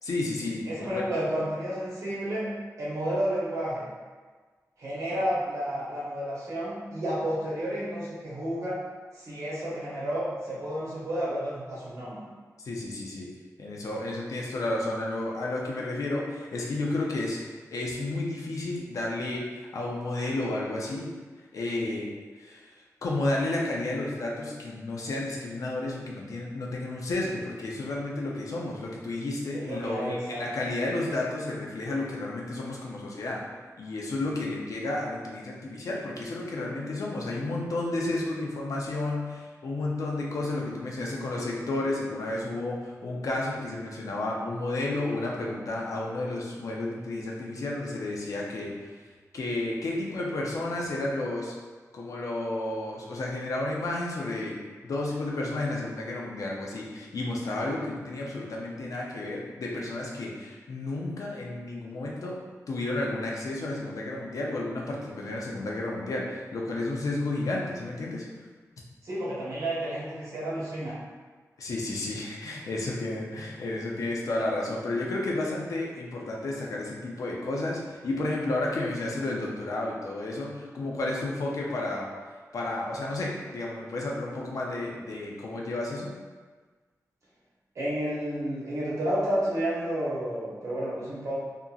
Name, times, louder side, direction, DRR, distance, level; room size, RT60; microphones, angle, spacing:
voice 1, 0.0-1.0 12.6-13.3 13.6-17.4 17.7-21.1 21.5-22.1 22.4-22.7 23.0-33.4 33.8-49.0 49.3-51.5 51.9-62.4 62.7-68.2 71.6-82.1 82.5-86.1, left 2 dB, 65° left, -2 dB, 0.5 m, -32 dB
voice 2, 0.7-2.5 2.8-3.8 4.8-8.8 9.1-12.2 29.5-30.4 69.0-71.0 87.7-91.3, right 1 dB, 60° right, -8 dB, 0.9 m, -31 dB
2.8 x 2.5 x 2.4 m, 1.4 s
wide cardioid pair, 165°, 6 cm